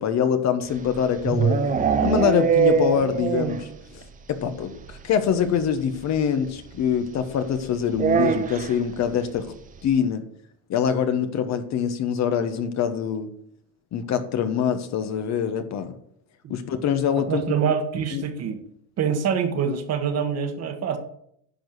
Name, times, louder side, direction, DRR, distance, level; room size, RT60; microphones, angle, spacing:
voice 1, 0.0-3.7 3.9-4.0 4.3-9.5 9.8-10.2 10.7-13.3 13.9-15.9 16.5-17.4 18.1-18.2, left 8 dB, 40° left, 9 dB, 1.1 m, -24 dB
sound 1, 0.7-3.8 4.0-4.1 4.4-4.5 4.8-4.9 6.1-6.2 7.9-8.8, right 7 dB, 20° right, 0.6 m, -22 dB
voice 2, 17.3-18.6 19.0-21.0, right 7 dB, 35° right, 7 dB, 1.4 m, -25 dB
10.0 x 4.7 x 7.9 m, 0.69 s
cardioid pair, 140°, 43 cm